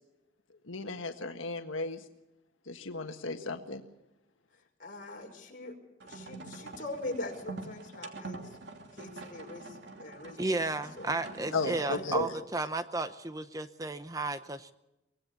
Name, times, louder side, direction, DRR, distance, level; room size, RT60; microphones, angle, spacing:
voice 1, 0.6-2.0 2.7-3.8 11.5-12.2, left 3 dB, 85° left, 5 dB, 1.6 m, -35 dB
voice 2, 4.8-5.8 6.0-8.6 8.9-10.6 11.0-11.2 12.1-12.3, left 2 dB, 45° left, 2 dB, 5.6 m, -40 dB
sound 1, 6.0-12.5, right 3 dB, 60° right, 3.1 m, -45 dB
voice 3, 10.4-14.7, right 2 dB, 15° right, 10 dB, 0.7 m, -33 dB
24.5 x 18.5 x 7.1 m, 0.92 s
head